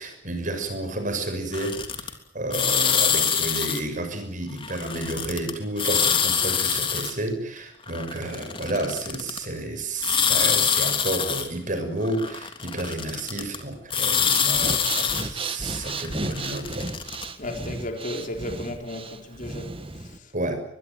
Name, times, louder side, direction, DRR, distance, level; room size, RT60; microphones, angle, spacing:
voice 1, 0.0-16.9 20.3-20.6, right 2 dB, 45° right, 6.5 m, -31 dB
sound 1, 1.5-2.1 2.5-3.8 4.6-5.5 5.8-7.1 7.9-9.4 10.0-11.5 12.0-13.6 13.9-15.2 15.8-17.3, left 7 dB, 30° left, 3.2 m, -25 dB
Breathing, 14.1-20.2, right 3 dB, 30° right, 1.8 m, -34 dB
voice 2, 17.4-20.3, left 1 dB, 45° left, 4.4 m, -34 dB
23.5 x 21.5 x 9.1 m
head